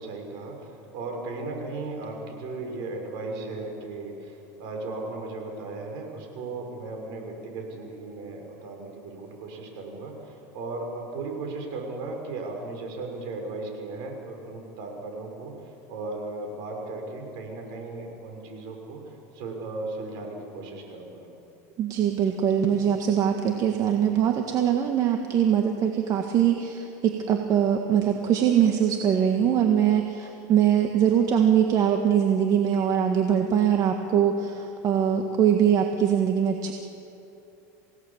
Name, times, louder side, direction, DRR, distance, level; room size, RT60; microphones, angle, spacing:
voice 1, 0.0-19.0 19.3-21.3, right 3 dB, 60° right, 2 dB, 6.1 m, -36 dB
voice 2, 21.8-36.7, right 9 dB, 40° right, 4 dB, 1.7 m, -22 dB
28.5 x 17.5 x 7.4 m, 2.9 s
supercardioid pair, 120°, 9 cm